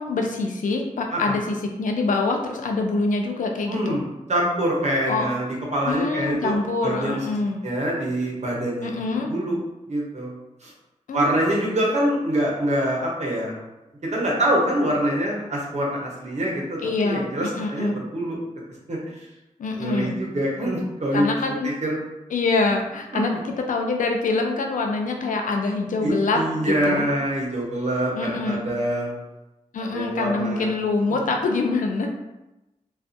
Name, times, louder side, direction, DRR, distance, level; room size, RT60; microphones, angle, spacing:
voice 1, 0.0-4.0 5.1-5.3 5.9-7.6 8.8-9.3 11.1-11.6 16.8-18.0 19.6-20.1 21.1-21.7 22.3-23.3 23.7-27.0 28.1-28.6 29.7-32.1, left 3 dB, 80° left, 2 dB, 0.4 m, -25 dB
voice 2, 3.7-5.4 5.7-6.6 6.8-7.2 7.6-9.6 9.9-10.3 10.6-10.7 11.1-13.6 14.0-18.4 18.9-19.3 19.8-21.3 21.6-21.9 23.1-23.2 26.0-29.1 29.8-30.7 31.1-31.2, right 1 dB, 60° right, -3 dB, 0.8 m, -25 dB
2.4 x 2.3 x 2.5 m, 0.97 s
cardioid pair, 65°, 13 cm